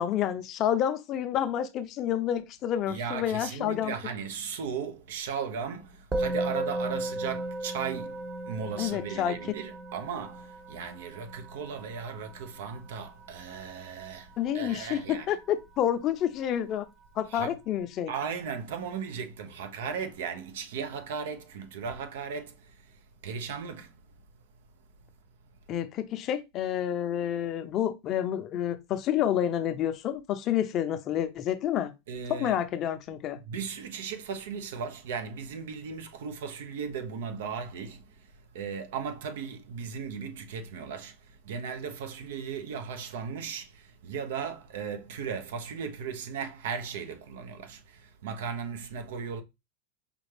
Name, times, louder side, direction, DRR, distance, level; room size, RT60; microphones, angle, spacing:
voice 1, 0.0-3.9 8.8-9.4 14.4-16.9 17.2-18.1 25.7-31.9 32.3-33.4, left 10 dB, 40° left, 0.5 m, -29 dB
voice 2, 2.9-15.3 17.3-17.6 18.1-23.9 32.1-32.6 33.4-38.3 38.5-49.4, right 6 dB, 75° right, 0.7 m, -37 dB
Musical instrument, 6.1-15.6, right 1 dB, 20° right, 0.9 m, -36 dB
5.1 x 2.3 x 3.2 m
hypercardioid pair, 115°, 0 cm